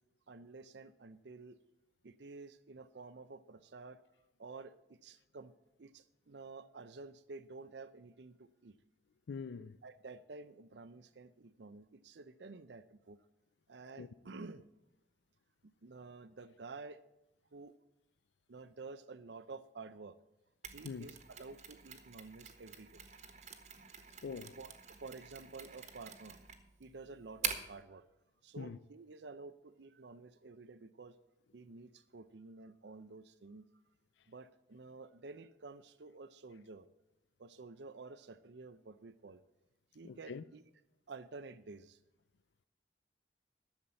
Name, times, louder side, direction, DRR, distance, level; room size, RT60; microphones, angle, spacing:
voice 1, 0.3-1.6 2.0-4.0 4.4-5.5 5.8-8.8 9.8-13.2 13.7-14.7 15.8-17.0 17.5-17.7 18.5-20.2 20.7-23.0 24.6-24.7 25.0-26.4 26.8-28.0 28.4-31.2 31.5-33.6 34.3-36.9 37.4-39.4 39.9-40.6 41.1-42.0, right 3 dB, 80° right, 0.6 m, -51 dB
voice 2, 9.3-9.8 14.0-14.1 20.8-21.1 24.2-24.6 28.6-28.8 40.0-40.4, left 5 dB, 80° left, 0.4 m, -43 dB
Mechanisms, 20.6-27.8, right 7 dB, 40° right, 1.4 m, -46 dB
12.5 x 7.2 x 7.6 m
head